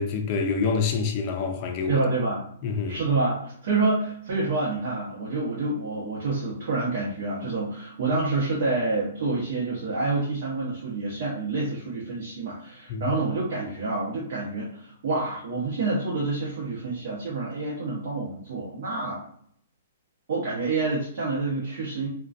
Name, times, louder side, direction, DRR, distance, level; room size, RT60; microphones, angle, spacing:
voice 1, 0.0-2.0 2.6-3.0 12.9-13.1, left 5 dB, 40° left, 0.4 m, -26 dB
voice 2, 1.9-2.4 2.9-19.2 20.3-22.1, right 3 dB, 60° right, 0.8 m, -28 dB
2.3 x 2.2 x 2.5 m
hypercardioid pair, 145°, 0 cm